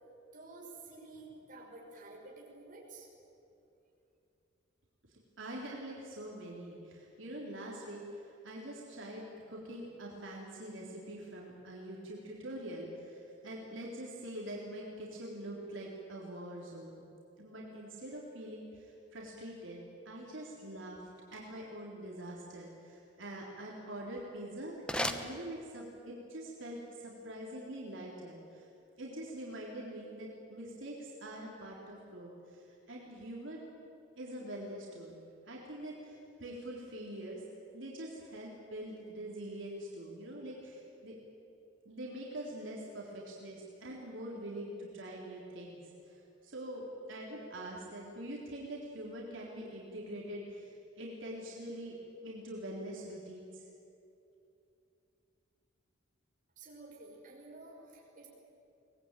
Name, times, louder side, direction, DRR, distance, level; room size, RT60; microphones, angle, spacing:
voice 1, 0.3-3.1 56.6-58.3, right 2 dB, 40° right, -2 dB, 5.9 m, -51 dB
voice 2, 5.1-17.0 17.4-21.0 21.3-28.7 29.0-33.6 34.1-35.2 35.5-37.4 37.7-41.2 41.9-52.0 52.2-53.7, right 1 dB, 70° right, -3 dB, 3.7 m, -44 dB
sound 1, 24.0-26.1, left 1 dB, 5° left, 1.0 m, -39 dB
24.0 x 19.5 x 9.2 m, 2.7 s
head